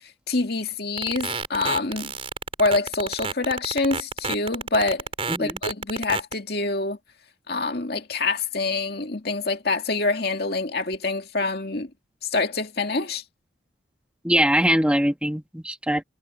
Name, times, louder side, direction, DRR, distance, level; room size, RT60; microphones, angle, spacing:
voice 1, 0.3-2.1 2.6-5.0 5.4-7.0 7.5-11.9 12.3-13.2, left 3 dB, 55° left, 2.2 m, -26 dB
sound 1, 1.0-6.3, right 4 dB, 30° right, 4.2 m, -29 dB
voice 2, 14.2-16.0, right 1 dB, 5° right, 1.7 m, -22 dB
head